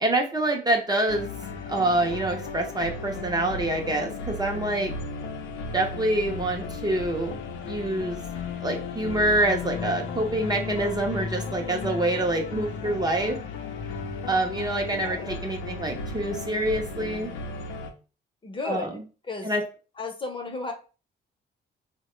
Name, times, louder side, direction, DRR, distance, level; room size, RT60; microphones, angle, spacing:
voice 1, 0.0-1.3 1.7-4.9 5.7-7.4 7.6-8.2 8.6-13.4 14.3-17.3 18.6-19.0 19.4-19.6, right 1 dB, 20° right, 2 dB, 0.5 m, -26 dB
sound 1, 1.1-17.9, left 4 dB, 80° left, 0.6 m, -35 dB
voice 2, 18.4-19.0 19.2-19.5 20.0-20.7, left 3 dB, 25° left, 4 dB, 0.7 m, -33 dB
3.1 x 2.1 x 3.0 m, 0.34 s
cardioid pair, 90°, 20 cm